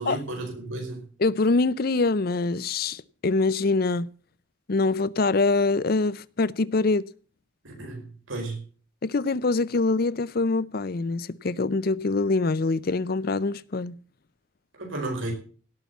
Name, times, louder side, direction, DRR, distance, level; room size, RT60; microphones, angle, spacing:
voice 1, 0.0-1.0 7.6-8.6 14.8-15.3, right 2 dB, 75° right, 4.9 m, -33 dB
voice 2, 1.2-4.1 4.7-7.0 9.0-14.0, left 3 dB, 45° left, 0.5 m, -24 dB
17.5 x 5.8 x 8.2 m
head